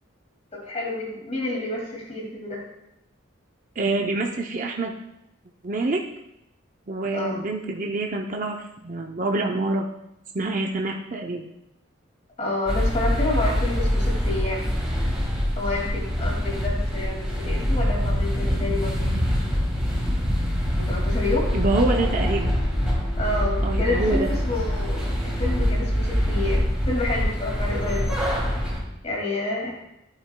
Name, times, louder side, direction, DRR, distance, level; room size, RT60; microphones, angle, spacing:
voice 1, 0.5-2.6 7.1-7.4 12.4-14.7 15.6-19.0 20.8-21.5 23.2-28.2 29.0-29.7, left 2 dB, 30° left, -2 dB, 2.2 m, -29 dB
voice 2, 3.8-4.9 5.6-6.0 6.9-9.8 10.3-11.5 21.5-22.6 23.6-24.3, right 2 dB, 40° right, 1 dB, 0.6 m, -26 dB
sound 1, 12.7-28.8, equal, 5° right, 2.5 m, -25 dB
sound 2, 21.5-26.5, right 1 dB, 90° left, 1.3 m, -28 dB
14.0 x 8.9 x 2.2 m, 0.84 s
head